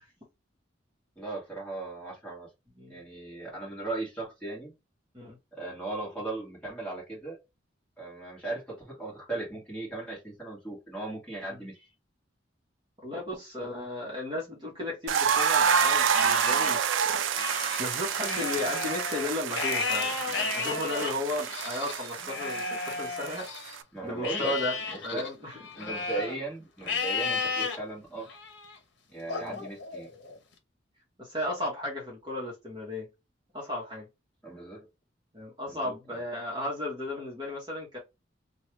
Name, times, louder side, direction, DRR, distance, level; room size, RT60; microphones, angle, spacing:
voice 1, 1.2-2.5 2.9-4.7 5.5-7.4 8.0-11.7 23.9-24.5 24.9-25.3 25.8-28.3 29.1-30.1 34.4-34.9 35.7-35.9, right 2 dB, 5° left, 1.7 m, -37 dB
voice 2, 13.0-17.2 17.8-23.5 24.0-24.8 25.0-25.6 27.2-27.4 29.4-29.6 31.2-33.1 33.5-34.1 35.3-38.0, left 1 dB, 25° right, 1.0 m, -35 dB
sound 1, 15.1-23.8, right 7 dB, 90° right, 0.4 m, -28 dB
Livestock farm animals working animals, 15.2-16.8 17.2-23.8 24.2-26.4 26.8-27.8 28.3-28.7 29.3-30.4, left 4 dB, 65° left, 0.8 m, -34 dB
3.1 x 2.3 x 3.0 m
head